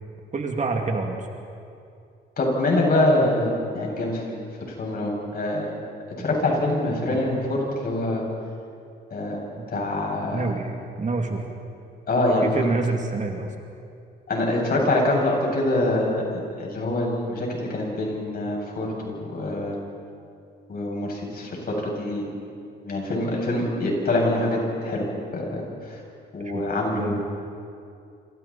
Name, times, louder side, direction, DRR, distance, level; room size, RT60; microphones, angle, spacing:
voice 1, 0.3-1.3 6.2-6.3 7.1-7.2 9.6-9.9 10.3-11.4 12.4-13.5 26.4-26.6 26.9-27.2, right 3 dB, 40° right, 2 dB, 2.6 m, -28 dB
voice 2, 2.4-4.4 4.8-5.7 6.2-8.2 9.1-9.4 9.7-10.5 12.1-12.7 14.3-19.8 20.7-22.3 22.8-25.6 25.9-26.0 26.3-27.2, left 1 dB, 50° left, -1 dB, 7.3 m, -25 dB
27.5 x 27.0 x 4.3 m, 2.5 s
cardioid pair, 90°, 20 cm